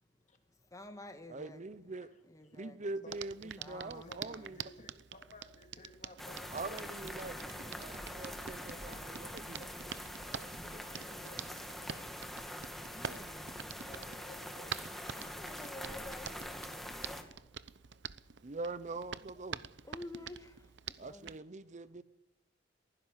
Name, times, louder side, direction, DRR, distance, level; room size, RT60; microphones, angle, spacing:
voice 1, 0.7-1.6 2.3-2.8 3.4-4.6 12.9-13.5 15.2-17.2 19.8-20.5 21.0-21.3, left 1 dB, 20° left, 2.0 m, -50 dB
voice 2, 1.3-2.1 2.5-4.6 6.5-7.4 7.6-9.6 18.4-19.6 21.0-22.0, right 3 dB, 40° right, 0.8 m, -43 dB
Hands, 3.1-21.4, right 7 dB, 70° right, 0.8 m, -47 dB
voice 3, 4.0-9.9 10.6-11.7 13.8-14.8, left 2 dB, 40° left, 3.1 m, -57 dB
sound 1, 6.2-17.2, equal, ahead, 2.3 m, -44 dB
23.0 x 16.0 x 7.4 m
head